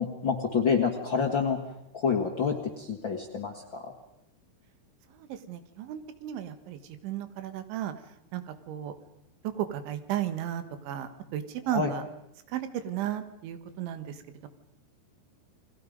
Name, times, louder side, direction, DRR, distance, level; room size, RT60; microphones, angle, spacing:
voice 1, 0.0-1.6 1.9-3.9 11.6-11.9, left 6 dB, 75° left, 0 dB, 1.1 m, -28 dB
voice 2, 5.2-7.9 8.3-8.9 9.6-12.0 12.5-14.2 14.4-14.5, right 11 dB, 85° right, 10 dB, 3.8 m, -34 dB
30.0 x 22.0 x 5.3 m, 0.86 s
omnidirectional pair, 5.2 m